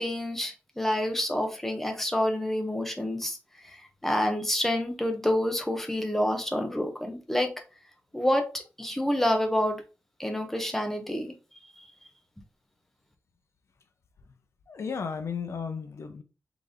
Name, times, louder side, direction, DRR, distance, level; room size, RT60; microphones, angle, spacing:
voice 1, 0.0-3.4 3.7-7.5 8.1-9.8 10.2-11.3, left 1 dB, 5° left, 0.9 m, -28 dB
voice 2, 14.7-16.2, left 6 dB, 65° left, 0.6 m, -34 dB
4.0 x 3.3 x 3.4 m
wide cardioid pair, 130°, 5 cm